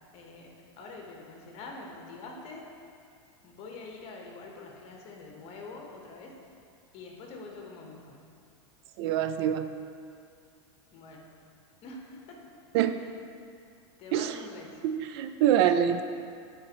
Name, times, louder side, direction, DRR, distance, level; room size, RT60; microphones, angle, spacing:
voice 1, 0.1-2.9 3.4-6.4 6.9-8.2 10.9-11.4 11.8-12.6 14.0-14.8, left 3 dB, 40° left, 0 dB, 1.2 m, -45 dB
voice 2, 9.0-9.7 12.7-13.1 14.1-14.4 14.8-16.0, right 10 dB, 60° right, 9 dB, 0.4 m, -25 dB
10.0 x 4.4 x 3.0 m, 2.4 s
supercardioid pair, 130°, 15 cm